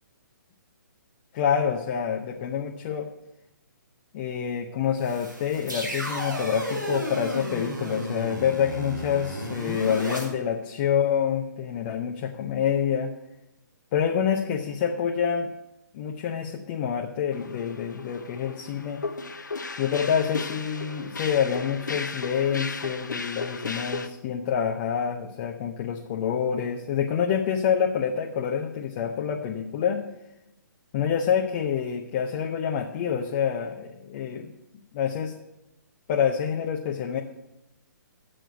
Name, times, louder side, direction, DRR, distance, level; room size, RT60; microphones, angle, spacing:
voice 1, 1.3-3.1 4.1-13.1 13.9-15.5 15.9-19.0 19.8-30.1 30.9-34.5 34.9-35.3 36.1-37.2, left 8 dB, 30° left, 2 dB, 0.7 m, -27 dB
sound 1, 5.0-10.2, equal, 80° right, 3.8 m, -33 dB
sound 2, 17.3-24.1, left 3 dB, 70° left, 0.8 m, -35 dB
7.5 x 6.9 x 7.7 m, 0.92 s
figure-of-eight pair, 130°, 10 cm